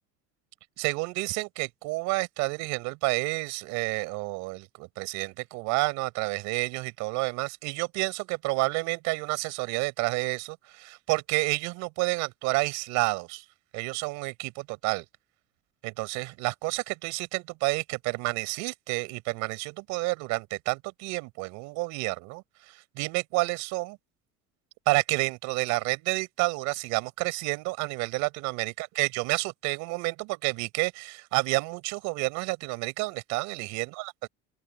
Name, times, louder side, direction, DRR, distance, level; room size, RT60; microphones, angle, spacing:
voice 1, 0.8-13.4 13.7-15.1 15.8-24.0 24.9-34.3, right 25 dB, 70° right, 5.9 m, -30 dB
open air
cardioid pair, 160°, 30 cm